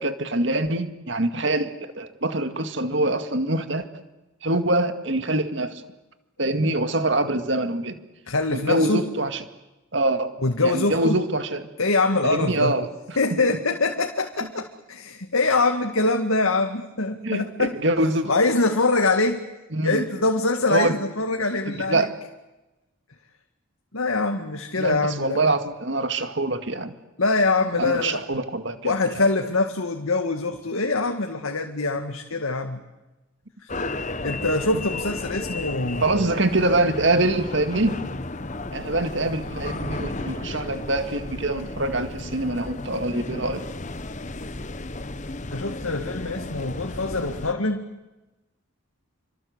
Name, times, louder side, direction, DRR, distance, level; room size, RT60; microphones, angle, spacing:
voice 1, 0.0-4.0 4.4-5.8 6.4-8.0 8.5-9.4 9.9-11.7 12.2-13.4 17.2-18.3 19.7-20.0 20.7-21.0 21.7-22.1 24.8-27.0 27.8-29.2 34.7-34.8 36.0-38.0 38.7-43.7, right 2 dB, 60° right, 8 dB, 2.1 m, -24 dB
voice 2, 8.3-9.0 10.4-11.2 11.8-12.7 13.2-17.8 18.3-19.4 19.8-22.1 23.9-25.4 27.2-28.2 28.8-32.8 33.6-33.7 34.2-36.3 45.5-47.9, left 3 dB, 85° left, 4 dB, 2.2 m, -24 dB
sound 1, 33.7-47.5, left 2 dB, 35° left, 1.2 m, -33 dB
29.0 x 25.0 x 8.2 m, 1.0 s
head